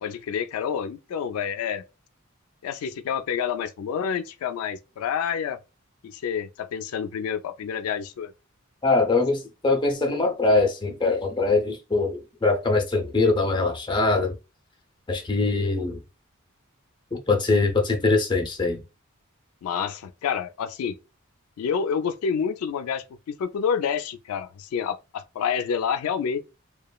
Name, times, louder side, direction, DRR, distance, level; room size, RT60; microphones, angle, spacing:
voice 1, 0.0-1.8 2.6-5.6 6.0-8.3 19.6-21.0 21.6-23.0 23.4-26.4, left 7 dB, 85° left, 0.3 m, -28 dB
voice 2, 8.8-14.4 15.1-16.0 17.1-18.8, left 3 dB, 20° left, 0.5 m, -22 dB
2.9 x 2.2 x 2.3 m
head